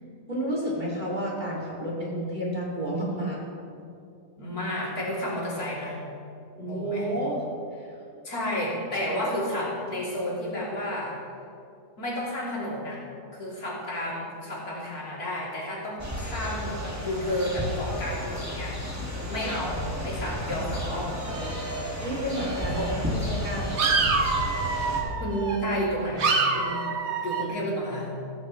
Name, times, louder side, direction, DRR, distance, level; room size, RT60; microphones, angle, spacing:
voice 1, 0.3-3.4 6.6-7.4 7.7-7.9 22.0-24.0, right 1 dB, 30° right, -5 dB, 2.5 m, -31 dB
voice 2, 4.4-6.0 6.6-7.0 8.2-11.1 12.0-13.0 13.3-19.0 19.3-21.2 22.8-22.9 25.2-26.9 27.2-28.1, equal, 60° left, -6 dB, 3.5 m, -31 dB
sound 1, 16.0-25.0, left 1 dB, 10° right, 1.6 m, -33 dB
sound 2, 20.8-22.0 22.3-22.9 23.3-25.8 26.2-27.4, right 4 dB, 50° right, 1.0 m, -28 dB
15.0 x 14.5 x 3.1 m, 2.5 s
omnidirectional pair, 1.8 m